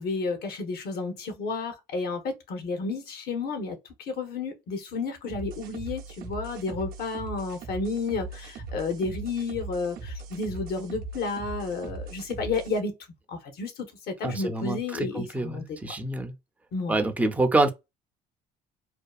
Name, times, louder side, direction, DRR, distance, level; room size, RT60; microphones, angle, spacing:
voice 1, 0.0-13.0 13.3-15.8 16.7-17.1, left 3 dB, 65° left, 0.8 m, -31 dB
sound 1, 5.3-12.8, right 3 dB, 60° right, 0.6 m, -39 dB
voice 2, 14.2-16.3 16.9-17.7, right 2 dB, 10° right, 0.4 m, -26 dB
2.7 x 2.2 x 2.3 m
cardioid pair, 110°, 17 cm